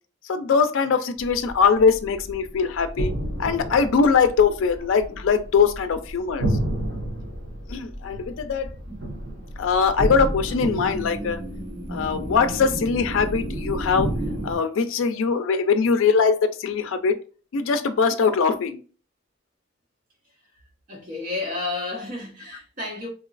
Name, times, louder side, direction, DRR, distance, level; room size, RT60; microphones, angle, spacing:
voice 1, 0.3-3.1 3.4-6.5 7.7-8.7 9.6-11.4 11.9-14.1 14.4-17.2 17.5-18.8, left 5 dB, 80° left, 0.4 m, -21 dB
sound 1, 1.2-14.6, right 1 dB, 70° right, 1.0 m, -31 dB
voice 2, 20.9-23.1, left 3 dB, 45° right, 1.2 m, -31 dB
2.9 x 2.7 x 2.4 m
head